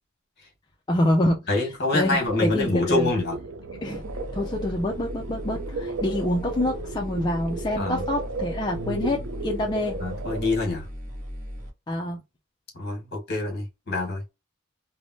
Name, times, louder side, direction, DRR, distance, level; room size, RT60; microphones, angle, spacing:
voice 1, 0.9-3.1 3.7-4.0 4.3-10.0 11.9-12.2, left 1 dB, 20° left, 0.3 m, -26 dB
voice 2, 1.5-3.4 7.8-8.0 10.0-10.9 12.7-14.2, left 2 dB, 50° left, 1.3 m, -26 dB
sound 1, 2.3-10.6, right 3 dB, 65° right, 0.4 m, -35 dB
sound 2, 3.9-11.7, equal, 40° right, 0.8 m, -38 dB
3.3 x 2.0 x 2.5 m
head